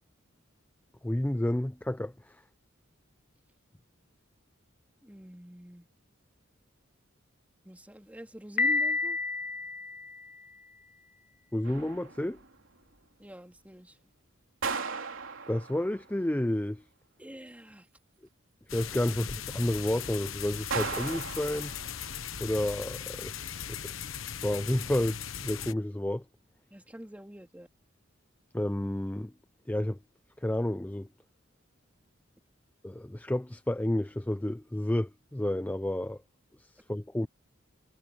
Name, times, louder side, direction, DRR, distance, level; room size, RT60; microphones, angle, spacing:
voice 1, 1.0-2.4 11.5-12.4 15.5-16.8 18.7-21.7 22.4-26.2 28.5-29.3 29.7-30.0 30.4-31.1 32.8-36.2 36.6-37.3, left 1 dB, 10° left, 0.5 m, -31 dB
voice 2, 5.0-5.9 7.6-9.2 13.2-14.0 17.2-17.9 19.1-19.2 26.7-27.7, equal, 10° right, 3.5 m, -46 dB
Piano, 8.6-10.5, left 4 dB, 45° left, 1.1 m, -30 dB
sound 1, 11.6-12.5 14.6-16.1 20.7-22.2, right 5 dB, 75° right, 3.5 m, -37 dB
sound 2, 18.7-25.7, left 8 dB, 85° left, 1.1 m, -39 dB
head